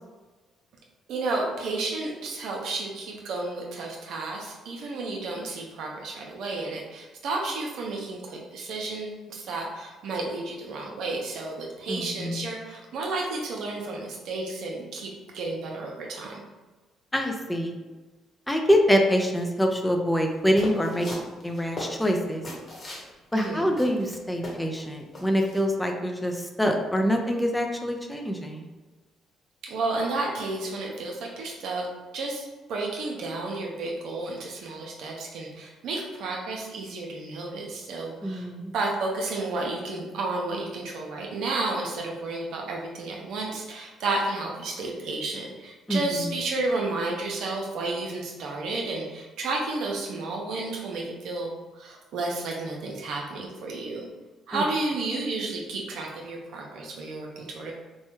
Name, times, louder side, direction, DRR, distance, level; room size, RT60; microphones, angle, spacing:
voice 1, 1.1-16.4 23.3-23.6 29.6-31.9 32.1-38.5 38.7-54.1 54.5-57.7, right 2 dB, 70° right, -1 dB, 0.6 m, -32 dB
voice 2, 11.9-12.5 17.1-17.7 18.5-21.1 21.4-22.4 23.3-28.7 38.2-38.7 45.9-46.3 54.5-54.6, equal, 10° left, 3 dB, 0.5 m, -25 dB
sound 1, 20.6-23.1 23.4-23.5 23.8-24.8 25.1-25.6, left 1 dB, 40° left, 1.0 m, -37 dB
3.1 x 2.2 x 3.0 m, 1.3 s
supercardioid pair, 55°, 0 cm